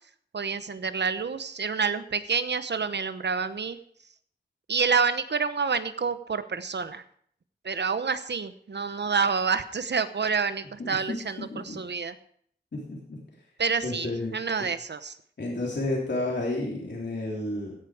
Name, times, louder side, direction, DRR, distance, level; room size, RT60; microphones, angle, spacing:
voice 1, 0.3-3.8 4.7-7.0 7.6-12.1 13.6-15.2, right 5 dB, 70° right, 12 dB, 1.0 m, -28 dB
voice 2, 12.7-13.2 13.8-14.7 15.4-17.7, left 2 dB, 70° left, -3 dB, 3.3 m, -31 dB
15.5 x 8.1 x 5.0 m, 0.63 s
wide cardioid pair, 55°, 18 cm